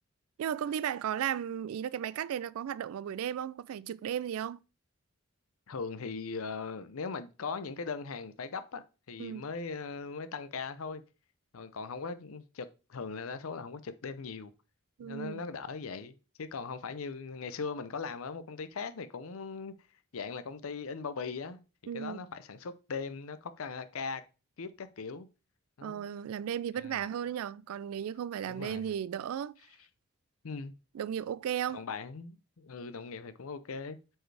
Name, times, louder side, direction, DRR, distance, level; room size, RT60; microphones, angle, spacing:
voice 1, 0.4-4.6 9.2-9.4 15.0-15.4 21.9-22.2 25.8-29.6 30.9-31.8, right 9 dB, 80° right, 0.3 m, -35 dB
voice 2, 5.7-11.0 11.5-14.5 15.0-19.7 20.1-21.6 21.9-24.2 24.6-25.3 25.8-26.0 26.8-27.0 28.5-28.9 30.4-30.7 31.7-34.0, left 4 dB, 80° left, 0.6 m, -39 dB
7.8 x 4.5 x 3.3 m
head